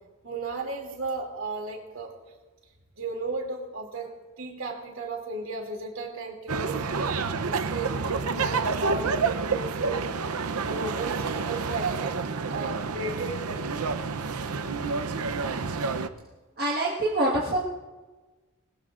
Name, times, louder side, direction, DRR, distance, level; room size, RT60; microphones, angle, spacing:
voice 1, 0.2-2.1 3.0-4.1 4.4-8.1 8.3-10.1 10.6-12.2 12.5-13.7, right 3 dB, 65° right, 1 dB, 2.8 m, -35 dB
sound 1, 6.5-16.1, right 4 dB, 85° right, 0.7 m, -29 dB
voice 2, 16.6-17.6, right 1 dB, 45° right, -4 dB, 1.6 m, -25 dB
21.0 x 19.5 x 2.5 m, 1.2 s
head